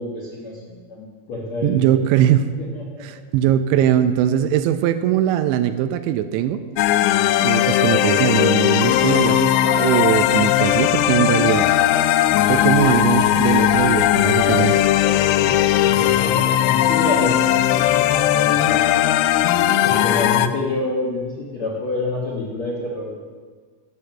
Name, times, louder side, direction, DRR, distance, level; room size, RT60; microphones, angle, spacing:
voice 1, 0.0-1.9 2.6-3.0 15.4-15.6 15.8-18.8 19.8-23.2, left 2 dB, 65° left, -4 dB, 1.7 m, -28 dB
voice 2, 1.6-2.5 3.0-6.6 7.4-11.7 12.5-14.8, right 10 dB, 85° right, 10 dB, 2.8 m, -20 dB
sound 1, 6.8-20.5, left 12 dB, 85° left, 2.4 m, -18 dB
11.5 x 6.5 x 7.9 m, 1.5 s
omnidirectional pair, 5.4 m